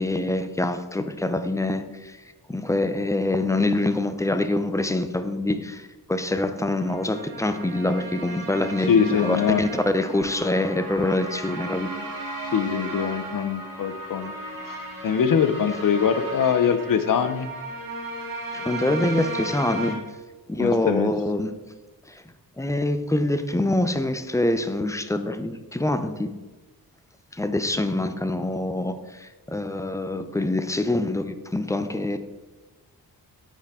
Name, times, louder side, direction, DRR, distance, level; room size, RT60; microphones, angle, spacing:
voice 1, 0.0-2.2 2.5-11.9 18.5-20.0 20.5-21.5 22.1-22.2 22.6-26.3 27.3-32.2, left 2 dB, 10° left, 9 dB, 0.4 m, -25 dB
sound 1, 6.6-19.9, right 2 dB, 60° right, 1.8 m, -35 dB
voice 2, 8.9-9.6 12.5-14.3 15.0-17.5 20.6-21.1, left 7 dB, 55° left, 10 dB, 0.6 m, -22 dB
9.0 x 4.5 x 3.6 m, 1.2 s
wide cardioid pair, 95°, 38 cm